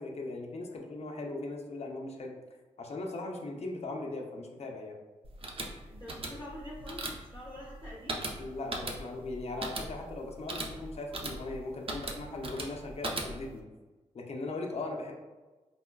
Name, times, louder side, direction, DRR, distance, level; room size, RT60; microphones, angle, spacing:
voice 1, 0.0-2.3 2.8-5.0 8.4-13.6 14.1-15.1, left 2 dB, 55° left, 1 dB, 0.6 m, -39 dB
sound 1, 5.2-13.6, right 2 dB, 45° right, 0.6 m, -39 dB
voice 2, 5.8-8.2, equal, 20° left, -8 dB, 0.8 m, -45 dB
4.2 x 2.2 x 2.2 m, 1.2 s
cardioid pair, 55°, 13 cm